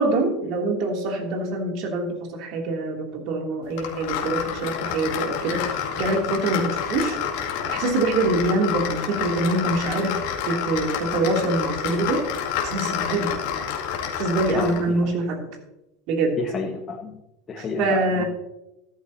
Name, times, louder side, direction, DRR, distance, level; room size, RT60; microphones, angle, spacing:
voice 1, 0.0-7.2 7.7-10.2 10.5-12.2 12.6-13.4 14.2-15.4 16.1-16.4 17.6-18.2, right 2 dB, 60° right, 1 dB, 3.0 m, -24 dB
sound 1, 3.8-14.9, left 8 dB, 70° left, 2.1 m, -29 dB
voice 2, 14.5-15.1 16.4-17.2 17.5-18.2, left 4 dB, 30° left, 0 dB, 1.6 m, -31 dB
13.5 x 12.0 x 2.9 m, 0.93 s
hypercardioid pair, 85°, 0 cm